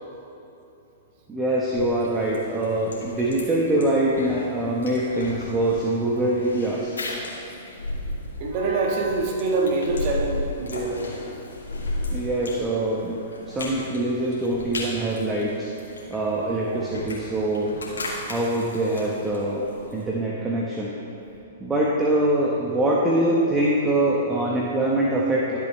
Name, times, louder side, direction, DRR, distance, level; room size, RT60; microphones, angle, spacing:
voice 1, 1.3-6.9 12.1-13.2 13.5-15.7 16.1-17.7 18.3-19.7 19.9-20.9 21.6-25.6, right 1 dB, 15° right, -4 dB, 1.2 m, -24 dB
sound 1, 1.7-20.0, left 2 dB, 85° left, 2.2 m, -35 dB
voice 2, 8.4-11.0 18.2-18.3, right 3 dB, 50° right, 0 dB, 1.4 m, -25 dB
13.5 x 7.6 x 3.3 m, 2.9 s
hypercardioid pair, 115°, 0 cm